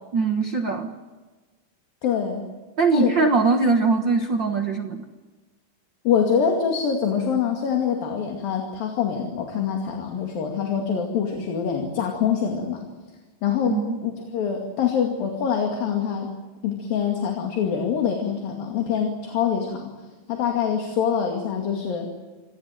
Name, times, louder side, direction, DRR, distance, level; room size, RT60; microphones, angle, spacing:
voice 1, 0.1-0.9 2.8-5.0 13.7-14.0, right 4 dB, 75° right, 6 dB, 1.0 m, -21 dB
voice 2, 2.0-2.5 2.9-3.1 6.1-12.9 13.4-16.3 16.6-19.9 20.3-22.1, left 7 dB, 70° left, 2 dB, 4.1 m, -25 dB
26.0 x 18.0 x 9.2 m, 1.3 s
omnidirectional pair, 4.4 m